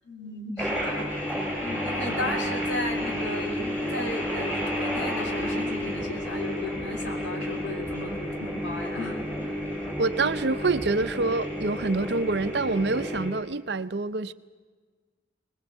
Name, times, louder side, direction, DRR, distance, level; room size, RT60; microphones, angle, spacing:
voice 1, 0.0-9.6, left 2 dB, 70° left, 3 dB, 3.6 m, -36 dB
sound 1, 0.6-13.3, equal, 10° left, 6.8 m, -31 dB
voice 2, 9.8-14.3, right 3 dB, 60° right, 12 dB, 0.7 m, -26 dB
22.5 x 20.5 x 8.2 m, 1.5 s
head